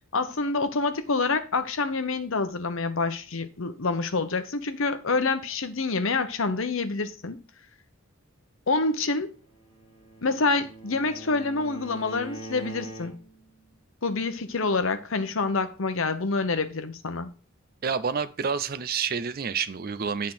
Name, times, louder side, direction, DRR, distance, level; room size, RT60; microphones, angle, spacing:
voice 1, 0.0-7.4 8.7-9.3 10.2-13.1 14.0-17.3, left 3 dB, 65° left, 0.9 m, -27 dB
Bowed string instrument, 9.5-13.5, right 2 dB, 25° left, 2.7 m, -42 dB
voice 2, 17.8-20.3, right 6 dB, 45° right, 0.5 m, -28 dB
8.6 x 3.7 x 6.0 m
head